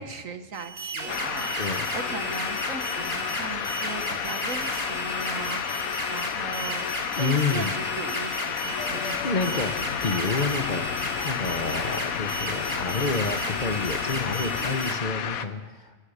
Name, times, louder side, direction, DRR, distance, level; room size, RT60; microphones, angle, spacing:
voice 1, 0.0-6.9 7.2-9.5 9.8-10.0, right 4 dB, 70° right, 8 dB, 1.7 m, -38 dB
sound 1, 0.5-14.9, right 2 dB, 45° right, 3.8 m, -34 dB
sound 2, 1.1-15.5, left 9 dB, 90° left, 1.3 m, -31 dB
voice 2, 1.6-1.9 7.2-7.7 9.0-16.0, left 4 dB, 35° left, 8 dB, 1.1 m, -29 dB
sound 3, 8.8-14.8, left 7 dB, 60° left, 1.3 m, -38 dB
28.0 x 15.0 x 6.6 m, 1.3 s
omnidirectional pair, 1.4 m